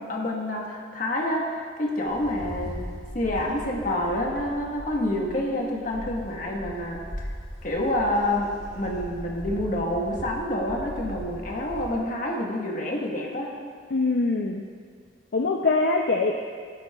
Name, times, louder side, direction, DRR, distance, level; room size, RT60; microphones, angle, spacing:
voice 1, 0.0-2.8 3.1-7.0 7.6-13.5, left 1 dB, 45° left, -1 dB, 1.3 m, -28 dB
Wind, 2.1-12.1, equal, 20° right, 2.1 m, -39 dB
voice 2, 13.9-14.6 15.3-16.5, left 3 dB, 65° left, 2 dB, 0.5 m, -23 dB
15.5 x 8.0 x 2.3 m, 2.1 s
head